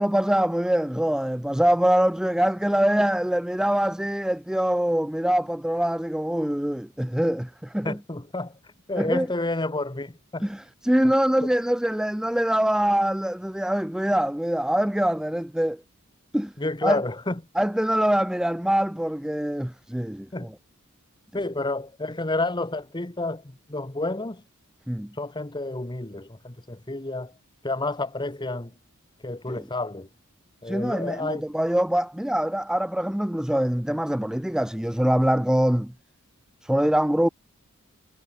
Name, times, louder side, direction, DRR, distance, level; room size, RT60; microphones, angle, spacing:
voice 1, 0.0-8.0 9.0-9.3 10.4-15.8 16.3-16.5 16.8-17.0 17.6-20.3 24.9-25.1 29.5-29.6 30.7-35.9 36.6-37.3, right 1 dB, 5° right, 0.4 m, -24 dB
voice 2, 7.8-8.5 8.9-10.5 11.4-11.5 16.6-17.4 20.3-20.5 21.3-24.4 25.2-27.3 27.6-28.7 29.2-30.1 30.6-31.4, left 2 dB, 20° left, 1.2 m, -30 dB
head